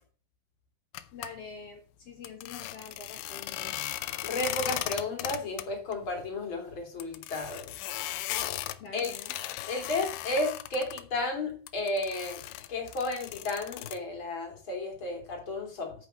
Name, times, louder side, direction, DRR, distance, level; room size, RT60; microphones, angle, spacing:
sound 1, 0.9-1.3 2.2-5.6 5.9-6.0 6.3-6.4 7.0-11.0 11.7-14.0, left 14 dB, 85° left, 2.2 m, -37 dB
voice 1, 1.1-3.8 8.8-9.3, left 5 dB, 50° left, 3 dB, 1.9 m, -45 dB
voice 2, 4.2-7.7 8.9-9.1 9.7-12.4 12.7-15.9, left 2 dB, 35° left, 3 dB, 2.6 m, -33 dB
9.0 x 6.2 x 6.3 m, 0.39 s
omnidirectional pair, 5.3 m